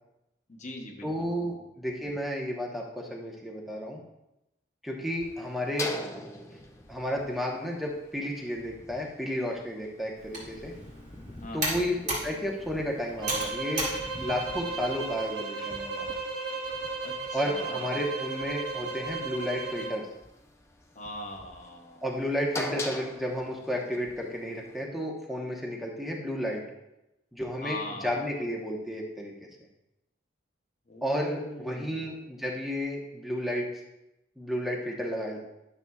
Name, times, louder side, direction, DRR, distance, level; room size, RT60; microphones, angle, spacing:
voice 1, 0.5-1.3 11.4-11.8 17.0-17.8 20.9-22.0 27.6-28.3 30.9-32.2, left 2 dB, 40° left, 2 dB, 0.9 m, -41 dB
voice 2, 1.0-4.0 4.8-6.0 6.9-10.7 11.5-13.9 14.2-16.2 17.3-20.0 22.0-26.6 27.3-29.3 31.0-33.7 34.4-35.4, equal, ahead, -2 dB, 1.0 m, -32 dB
sound 1, 5.2-24.8, left 1 dB, 15° left, 0.5 m, -44 dB
Computer keyboard, 10.2-15.3, right 1 dB, 40° right, 2.7 m, -36 dB
sound 2, 13.2-20.0, right 4 dB, 70° right, 1.3 m, -35 dB
12.0 x 6.7 x 2.4 m, 0.90 s
head